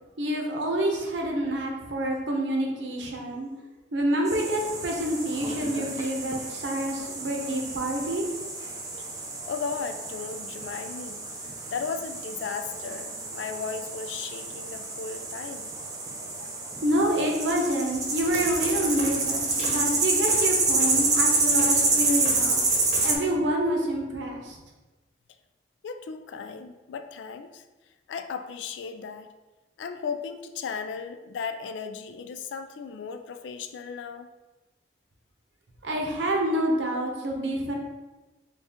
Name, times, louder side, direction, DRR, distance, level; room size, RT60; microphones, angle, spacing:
voice 1, 0.2-3.5 3.9-8.2 16.8-22.6 23.0-24.6 35.8-37.7, right 1 dB, 90° right, 1 dB, 0.7 m, -27 dB
sound 1, 4.3-23.2, right 3 dB, 20° right, 0.4 m, -28 dB
voice 2, 9.4-11.2 11.7-15.7 16.4-16.5 25.8-27.6 28.1-29.3 29.8-34.3, left 5 dB, 85° left, 8 dB, 0.3 m, -36 dB
sound 2, 18.2-23.3, right 1 dB, 40° right, 0.9 m, -39 dB
4.2 x 2.3 x 3.5 m, 1.1 s
head